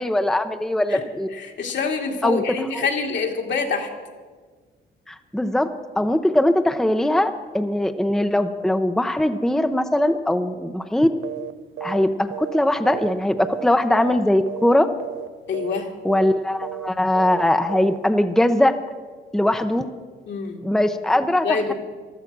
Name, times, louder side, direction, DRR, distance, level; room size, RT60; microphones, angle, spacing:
voice 1, 0.0-1.3 2.2-2.4 2.7-2.9 5.1-5.7 6.0-11.1 11.8-13.4 13.6-14.9 16.0-18.7 19.3-19.9 20.6-21.7, left 1 dB, ahead, 7 dB, 0.7 m, -20 dB
voice 2, 1.3-3.9 15.5-15.9 20.3-20.6 21.4-21.7, left 4 dB, 65° left, 2 dB, 2.3 m, -26 dB
sound 1, 11.2-11.5 11.8-12.0 12.3-13.7 13.9-14.2 14.5-14.7 15.0-15.3 15.5-15.8 16.1-16.4 16.6-16.9 17.1-17.4 17.7-18.0, right 16 dB, 90° right, 0.5 m, -33 dB
15.0 x 12.5 x 6.1 m, 1.5 s
cardioid pair, 90°, 20 cm